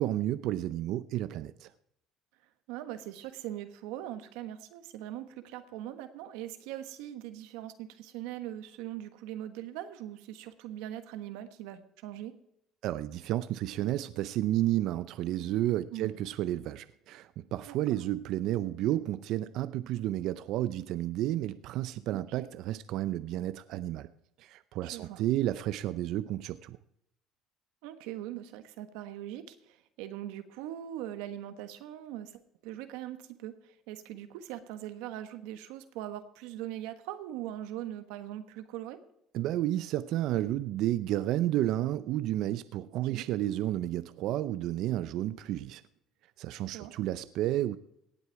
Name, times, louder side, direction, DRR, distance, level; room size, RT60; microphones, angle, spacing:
voice 1, 0.0-1.7 12.8-24.1 24.4-26.8 39.3-45.8 46.4-47.8, right 14 dB, 65° right, 14 dB, 0.5 m, -31 dB
voice 2, 2.7-12.3 15.9-16.2 17.7-17.8 22.1-22.5 24.8-25.2 27.8-32.3 32.6-39.0 43.1-43.2 46.7-46.9, right 12 dB, 85° right, 9 dB, 1.3 m, -41 dB
18.0 x 8.1 x 4.6 m, 0.77 s
cardioid pair, 115°, 0 cm